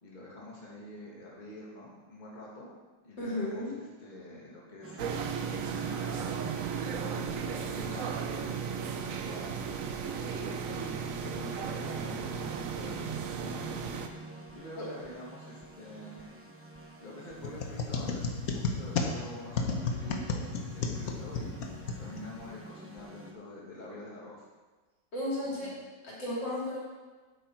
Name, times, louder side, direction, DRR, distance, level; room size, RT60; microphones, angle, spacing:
voice 1, 0.0-2.7 3.0-5.0 5.5-8.2 8.6-8.7 9.0-13.8 14.5-16.3 17.0-24.5 25.4-25.8, left 1 dB, 25° left, -5 dB, 2.0 m, -47 dB
voice 2, 3.2-3.7 25.1-25.7 26.0-26.8, left 1 dB, 75° left, -6 dB, 3.9 m, -34 dB
sound 1, 4.8-23.3, right 2 dB, 20° right, 0.4 m, -47 dB
sound 2, 5.0-14.1, right 7 dB, 60° right, 0.9 m, -35 dB
sound 3, 17.4-22.5, left 4 dB, 55° left, 1.3 m, -33 dB
10.0 x 8.4 x 4.6 m, 1.3 s
omnidirectional pair, 2.0 m